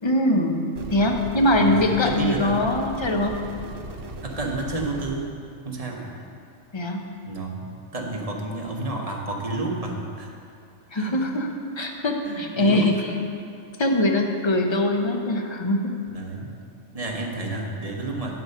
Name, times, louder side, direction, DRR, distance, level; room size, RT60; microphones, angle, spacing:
voice 1, 0.0-3.4 6.7-7.1 10.9-11.5 11.8-13.1 13.8-15.9, left 1 dB, 30° left, 3 dB, 0.6 m, -22 dB
sound 1, 0.8-5.2, right 1 dB, 80° right, 1.1 m, -37 dB
voice 2, 1.5-2.6 4.2-5.4 5.6-6.2 7.3-7.7 7.9-10.3 10.9-11.4 12.2-13.0 16.1-16.5 16.9-18.4, right 2 dB, 30° right, -1 dB, 1.0 m, -30 dB
9.6 x 4.9 x 6.6 m, 2.5 s
omnidirectional pair, 1.3 m